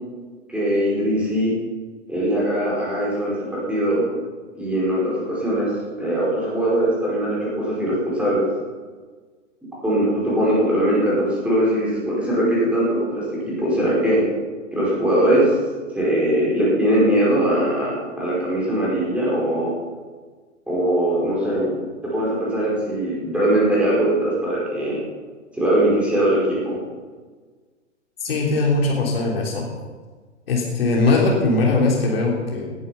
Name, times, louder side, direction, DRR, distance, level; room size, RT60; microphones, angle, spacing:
voice 1, 0.5-1.5 2.1-4.1 4.6-8.5 9.6-14.2 14.7-15.5 15.9-19.7 20.7-25.0 25.5-26.8, right 1 dB, 5° right, -7 dB, 5.1 m, -21 dB
voice 2, 28.2-29.7 30.5-32.7, left 3 dB, 50° left, -1 dB, 3.5 m, -20 dB
18.5 x 10.5 x 5.7 m, 1.4 s
figure-of-eight pair, 120°, 37 cm